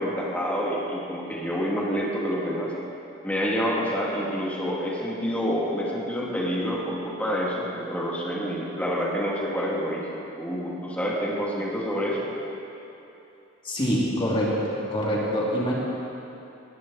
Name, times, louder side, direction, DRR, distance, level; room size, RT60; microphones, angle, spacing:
voice 1, 0.0-2.7 3.2-12.3, equal, 5° left, -5 dB, 2.7 m, -28 dB
voice 2, 13.6-15.7, equal, 25° left, -5 dB, 2.8 m, -25 dB
19.0 x 14.5 x 4.2 m, 2.9 s
head